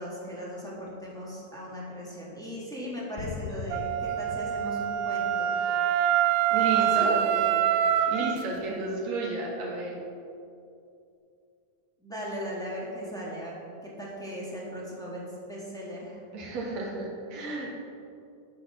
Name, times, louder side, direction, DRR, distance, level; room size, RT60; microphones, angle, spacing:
voice 1, 0.0-5.6 6.8-7.7 12.0-13.5 13.8-16.2, equal, ahead, -6 dB, 2.2 m, -38 dB
sound 1, 3.2-5.9, left 6 dB, 90° left, 1.4 m, -41 dB
Wind instrument woodwind instrument, 3.7-8.4, right 10 dB, 85° right, 1.5 m, -25 dB
voice 2, 6.5-7.2 8.1-10.0 16.3-17.7, right 3 dB, 65° right, -2 dB, 3.1 m, -32 dB
13.0 x 6.3 x 6.2 m, 2.5 s
omnidirectional pair, 3.5 m